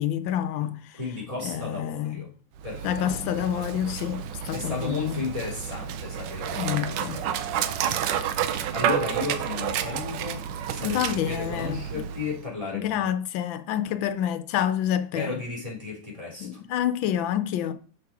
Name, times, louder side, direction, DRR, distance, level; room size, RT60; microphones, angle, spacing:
voice 1, 0.0-1.0 1.4-2.2 2.8-5.2 6.6-7.2 10.8-11.8 12.7-15.4 16.4-17.7, left 10 dB, 90° left, 1.4 m, -28 dB
voice 2, 0.9-2.3 2.6-3.0 4.5-8.1 8.7-13.0 15.1-16.6, left 4 dB, 20° right, 3.2 m, -34 dB
Dog, 2.6-12.5, right 9 dB, 75° right, 1.3 m, -30 dB
6.0 x 5.4 x 4.8 m
omnidirectional pair, 2.0 m